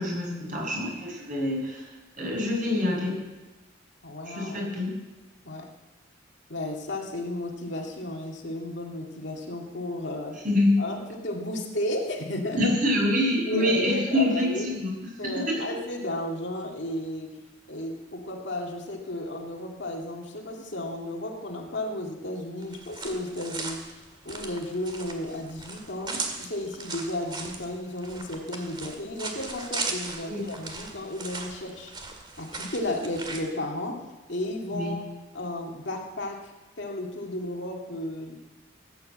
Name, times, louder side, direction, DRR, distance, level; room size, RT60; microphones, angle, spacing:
voice 1, 0.0-1.9 2.1-3.2 4.2-4.9 10.4-10.8 12.6-14.9 15.2-15.6 30.3-30.4 34.7-34.9, left 1 dB, 45° right, -2 dB, 6.8 m, -26 dB
voice 2, 4.0-4.7 5.4-5.7 6.5-10.4 10.8-12.8 13.5-14.7 15.2-17.4 17.7-23.9 24.2-31.9 32.4-35.0 35.3-36.5 36.8-38.4, left 1 dB, 60° left, 0 dB, 2.2 m, -33 dB
sound 1, 22.6-33.4, right 3 dB, 25° right, 2.0 m, -37 dB
18.0 x 9.6 x 7.8 m, 1.1 s
head